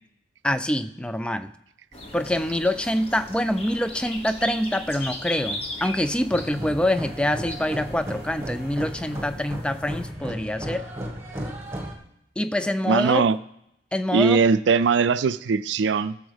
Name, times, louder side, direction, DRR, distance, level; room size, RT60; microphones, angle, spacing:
voice 1, 0.4-1.5 2.1-10.9 12.4-13.3 13.9-14.4, left 1 dB, 5° left, 0.3 m, -25 dB
sound 1, 1.9-10.1, left 1 dB, 35° left, 1.3 m, -38 dB
sound 2, 6.3-11.9, equal, 15° right, 1.6 m, -35 dB
voice 2, 12.9-13.4 14.1-16.2, right 5 dB, 80° right, 0.4 m, -20 dB
15.0 x 7.1 x 3.5 m
head